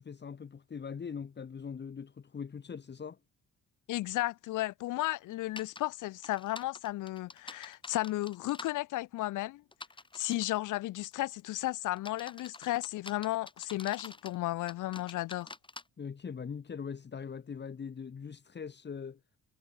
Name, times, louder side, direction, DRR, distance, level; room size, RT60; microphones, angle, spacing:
voice 1, 0.0-3.2 16.0-19.2, left 6 dB, 35° left, 1.7 m, -41 dB
voice 2, 3.9-9.6 10.1-15.5, left 16 dB, 85° left, 1.2 m, -34 dB
sound 1, 5.6-5.8 6.2-8.7 9.7-10.5 11.1-11.4 12.0-14.4 14.7-15.8, left 3 dB, 15° left, 1.5 m, -47 dB
cardioid pair, 90°, 30 cm